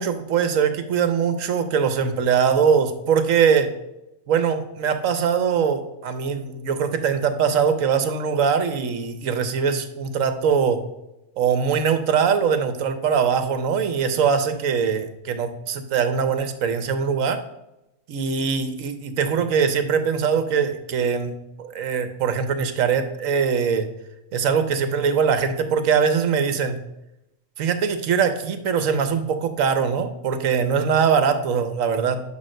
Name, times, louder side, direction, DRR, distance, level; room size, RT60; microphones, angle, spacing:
voice 1, 0.0-3.7 4.3-10.8 11.4-17.4 18.1-21.3 21.6-23.9 24.3-26.8 27.6-32.2, right 6 dB, 70° right, 9 dB, 1.2 m, -22 dB
10.5 x 3.7 x 6.4 m, 0.91 s
omnidirectional pair, 1.4 m